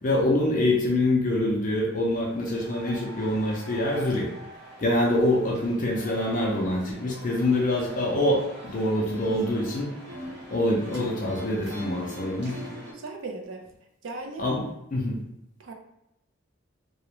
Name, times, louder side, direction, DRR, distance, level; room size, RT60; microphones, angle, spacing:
voice 1, 0.0-4.3 4.8-9.9 10.5-12.6 14.4-15.2, left 1 dB, 40° left, -2 dB, 0.4 m, -25 dB
sound 1, 2.0-12.9, equal, 55° right, 0.9 m, -43 dB
voice 2, 12.9-13.7 14.0-14.5 15.6-15.7, right 3 dB, 75° right, 3 dB, 0.4 m, -37 dB
2.4 x 2.0 x 2.9 m, 0.83 s
head